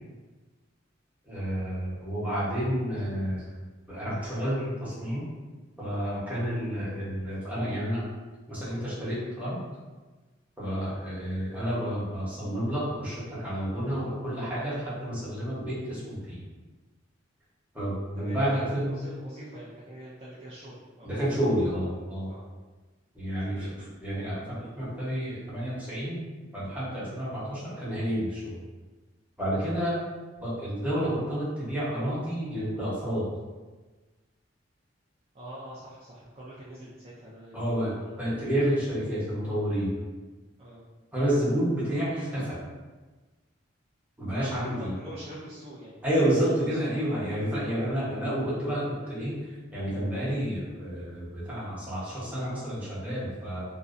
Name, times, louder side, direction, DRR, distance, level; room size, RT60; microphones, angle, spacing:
voice 1, 1.2-3.4 3.9-5.3 5.8-8.0 8.5-9.6 10.6-16.4 17.7-19.0 21.0-22.3 23.1-23.6 24.0-26.2 26.5-28.6 29.4-30.0 30.4-33.3 37.5-39.9 41.1-42.6 44.2-44.9 46.0-53.6, equal, 10° right, -10 dB, 0.9 m, -30 dB
voice 2, 18.2-21.1 22.3-22.4 23.4-23.9 35.3-38.4 40.6-40.8 44.6-46.0 46.3-46.4 46.7-46.8, equal, 30° right, -8 dB, 0.4 m, -45 dB
2.6 x 2.0 x 2.4 m, 1.3 s
head